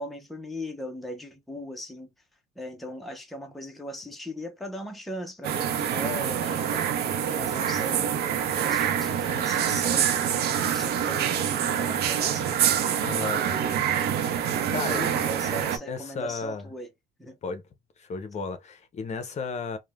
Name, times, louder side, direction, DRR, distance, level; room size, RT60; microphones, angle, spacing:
voice 1, 0.0-2.1 2.6-6.9 7.3-12.6 13.3-13.9 14.7-16.9 17.2-17.4, equal, ahead, 0.6 m, -39 dB
sound 1, 5.4-15.8, right 9 dB, 70° right, 0.6 m, -26 dB
voice 2, 13.0-13.4 14.7-15.2 15.7-16.7 17.4-17.6 18.0-19.8, left 4 dB, 40° left, 0.7 m, -33 dB
3.1 x 2.1 x 2.2 m
cardioid pair, 110°, 17 cm